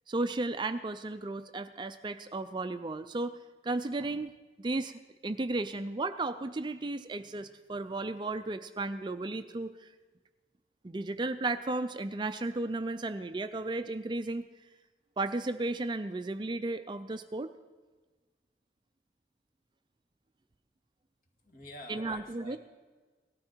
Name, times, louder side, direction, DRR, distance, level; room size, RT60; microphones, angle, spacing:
voice 1, 0.1-3.4 3.6-4.3 4.6-9.9 10.8-14.4 15.2-17.5 21.9-22.6, right 2 dB, 25° right, 11 dB, 0.4 m, -34 dB
voice 2, 21.4-22.6, equal, 50° left, 2 dB, 2.3 m, -47 dB
18.0 x 13.5 x 4.5 m, 1.3 s
head